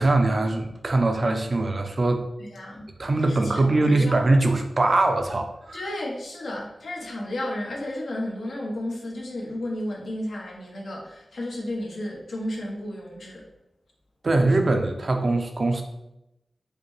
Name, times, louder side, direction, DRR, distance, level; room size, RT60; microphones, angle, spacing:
voice 1, 0.0-2.3 3.0-5.8 14.2-15.8, right 2 dB, 40° right, 5 dB, 0.5 m, -22 dB
voice 2, 2.5-2.8 3.2-4.5 5.7-13.5, left 1 dB, 80° left, -2 dB, 1.0 m, -33 dB
4.9 x 2.2 x 3.1 m, 0.87 s
wide cardioid pair, 115°, 0 cm